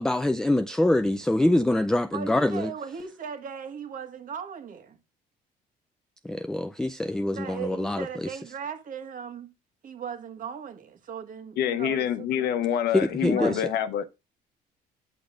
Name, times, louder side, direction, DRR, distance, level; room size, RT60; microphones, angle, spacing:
voice 1, 0.0-2.7 6.3-8.0 12.9-13.6, left 1 dB, 5° left, 0.3 m, -24 dB
voice 2, 2.1-5.0 7.3-9.5 9.8-12.5 13.3-13.6, right 7 dB, 55° right, 1.5 m, -38 dB
voice 3, 11.6-14.0, left 9 dB, 75° left, 0.9 m, -26 dB
10.0 x 6.1 x 2.4 m
cardioid pair, 110°, 17 cm